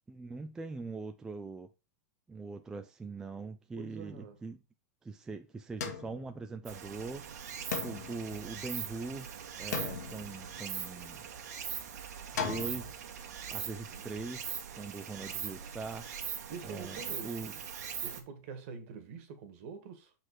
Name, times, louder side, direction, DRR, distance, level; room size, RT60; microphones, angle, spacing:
voice 1, 0.1-1.7 2.3-4.6 5.0-7.5 7.8-9.3 9.6-11.2 12.3-13.0 13.5-16.3 16.6-17.6, right 3 dB, 5° right, 0.3 m, -42 dB
voice 2, 3.8-4.4 13.8-14.0 16.5-17.5 18.0-20.1, right 5 dB, 50° right, 1.7 m, -45 dB
sound 1, 5.8-7.0 7.7-9.1 9.7-11.1 12.4-12.9, left 6 dB, 85° left, 1.7 m, -39 dB
Stream, 6.7-18.2, right 8 dB, 75° right, 1.5 m, -41 dB
6.4 x 4.3 x 4.8 m
supercardioid pair, 155°, 9 cm